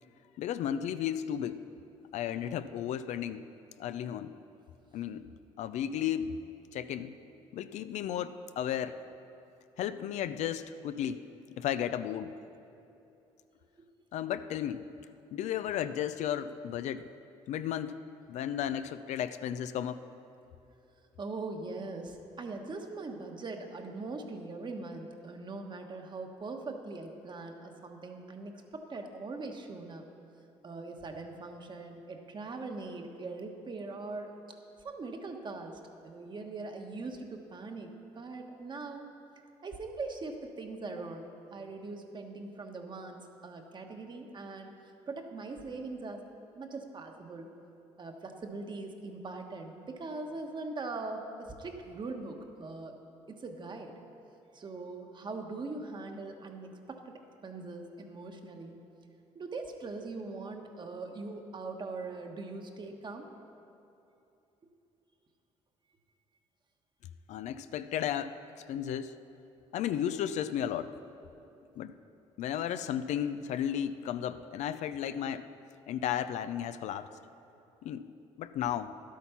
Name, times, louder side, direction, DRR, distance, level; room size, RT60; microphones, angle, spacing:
voice 1, 0.4-1.6 2.1-3.5 3.8-4.3 4.9-5.3 5.6-6.3 6.7-7.1 7.5-9.0 9.8-11.2 11.6-12.3 14.1-14.9 15.3-17.1 17.5-18.0 18.3-20.0 67.3-69.1 69.7-70.9 71.8-72.0 72.4-75.5 75.9-77.1 77.8-78.1 78.4-78.9, left 10 dB, 70° left, 12 dB, 0.5 m, -34 dB
voice 2, 21.2-30.0 30.6-34.3 34.8-39.1 39.6-46.2 46.5-47.5 48.0-52.9 53.3-53.9 54.5-58.8 59.3-63.3, right 3 dB, 40° right, 4 dB, 1.3 m, -41 dB
11.5 x 8.4 x 5.8 m, 2.8 s
supercardioid pair, 80°, 12 cm